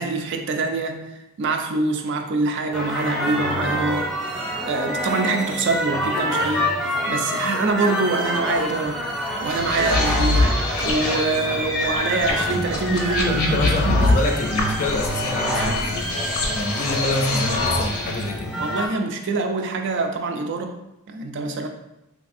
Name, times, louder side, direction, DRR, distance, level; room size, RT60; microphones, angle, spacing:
voice 1, 0.0-4.2 4.6-9.0 9.4-14.1 18.6-20.8 21.1-21.7, right 3 dB, 55° right, 5 dB, 0.3 m, -25 dB
sound 1, 2.7-18.9, equal, ahead, 0.7 m, -27 dB
sound 2, 9.5-18.3, left 2 dB, 85° left, 0.6 m, -24 dB
voice 2, 13.3-16.2 16.5-18.6, left 1 dB, 35° left, 2 dB, 0.3 m, -26 dB
3.3 x 2.4 x 2.5 m, 0.92 s
head